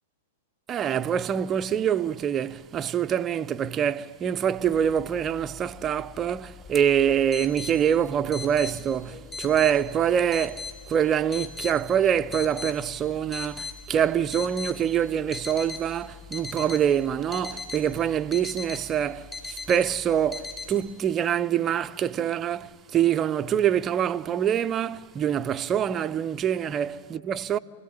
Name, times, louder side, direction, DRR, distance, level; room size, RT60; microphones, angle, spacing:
voice 1, 0.7-27.6, right 9 dB, 25° right, 0.6 m, -25 dB
sound 1, 4.6-20.7, left 4 dB, 25° left, 4.7 m, -40 dB
29.0 x 16.5 x 10.0 m
hypercardioid pair, 115°, 0 cm